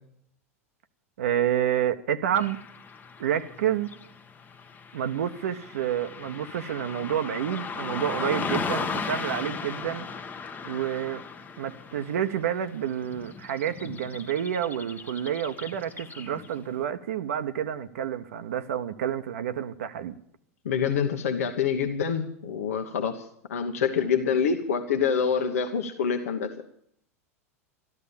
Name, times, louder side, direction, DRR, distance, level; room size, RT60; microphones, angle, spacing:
voice 1, 1.2-2.6 3.2-3.9 4.9-10.1 10.6-11.2 11.6-20.1, right 10 dB, 70° right, 0.8 m, -29 dB
Car passing by / Traffic noise roadway noise, 2.4-16.7, left 5 dB, 20° left, 1.0 m, -37 dB
voice 2, 20.6-26.5, left 6 dB, 70° left, 1.2 m, -26 dB
13.5 x 12.0 x 7.0 m
figure-of-eight pair, 90°, 8 cm